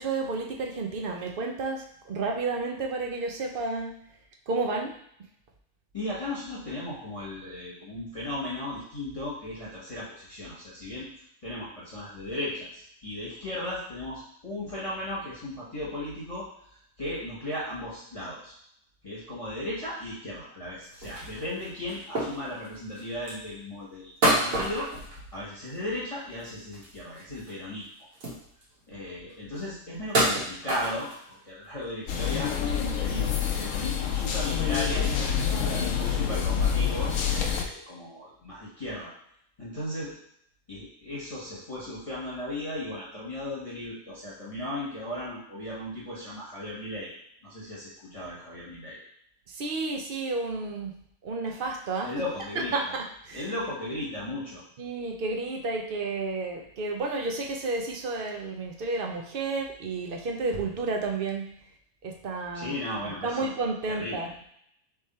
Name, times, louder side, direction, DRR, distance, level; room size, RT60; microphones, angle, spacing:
voice 1, 0.0-3.9 4.5-4.9 49.5-50.9 51.2-52.1 52.7-53.5 54.8-61.5 62.0-62.7 63.2-64.3, right 3 dB, 55° right, 1 dB, 0.6 m, -31 dB
voice 2, 5.9-11.1 11.4-18.5 19.0-24.9 25.3-27.9 28.9-35.1 35.5-39.1 39.6-40.1 40.7-47.1 47.4-49.0 52.0-52.9 53.3-54.6 62.5-63.5 63.9-64.3, left 1 dB, 25° left, -8 dB, 1.1 m, -36 dB
sound 1, 20.8-23.4 24.2-25.9 26.2-27.5 27.8-27.9 28.1-28.8 29.3-29.4 30.0-31.3 31.8-31.9 32.2-32.7 33.1-33.2 33.5-33.7 34.5-34.6, right 1 dB, 80° right, 1.7 m, -29 dB
sound 2, 32.1-37.6, left 8 dB, 75° left, 0.9 m, -27 dB
3.5 x 3.2 x 4.1 m, 0.71 s
omnidirectional pair, 1.4 m